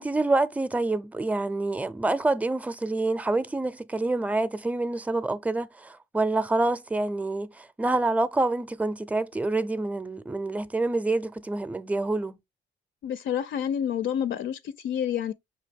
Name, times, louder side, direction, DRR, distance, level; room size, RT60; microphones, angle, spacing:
voice 1, 0.0-12.4, right 2 dB, 5° right, 0.5 m, -27 dB
voice 2, 13.0-15.3, left 9 dB, 70° left, 0.5 m, -28 dB
5.8 x 2.6 x 3.4 m
cardioid pair, 90°, 20 cm